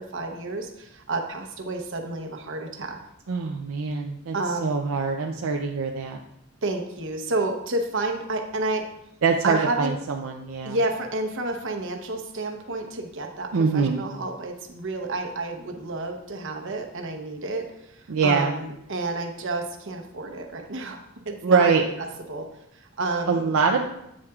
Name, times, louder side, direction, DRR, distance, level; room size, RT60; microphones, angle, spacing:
voice 1, 0.0-3.0 4.3-4.8 6.6-8.9 9.4-9.9 10.6-21.0 21.3-22.5 22.7-23.5, right 2 dB, 65° right, 4 dB, 0.9 m, -30 dB
voice 2, 3.3-4.3 4.6-6.2 9.2-10.8 13.5-14.0 18.1-18.5 21.4-21.8 23.3-23.8, right 5 dB, 80° right, 2 dB, 0.5 m, -23 dB
8.4 x 7.6 x 2.4 m, 0.83 s
head